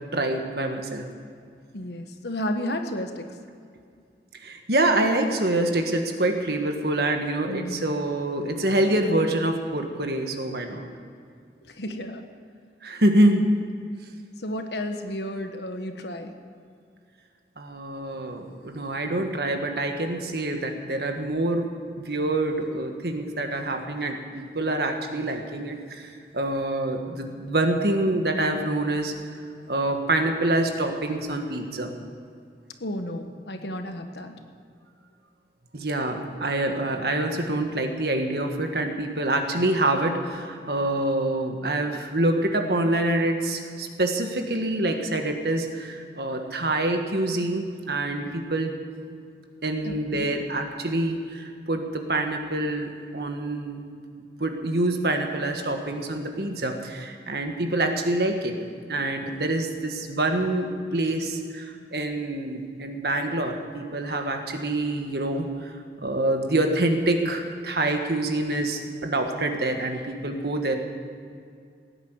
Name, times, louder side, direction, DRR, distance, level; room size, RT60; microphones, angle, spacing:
voice 1, 0.1-1.0 4.4-10.8 12.8-13.5 17.6-21.7 21.9-29.1 29.7-31.9 35.7-48.7 49.6-53.8 54.4-58.6 58.9-65.7 66.0-70.7, right 1 dB, 65° right, 4 dB, 1.6 m, -26 dB
voice 2, 1.7-3.2 7.5-7.8 11.8-12.2 14.4-16.3 32.8-34.4 49.8-50.3, left 1 dB, 75° left, 6 dB, 1.4 m, -32 dB
16.5 x 9.9 x 8.1 m, 2.3 s
head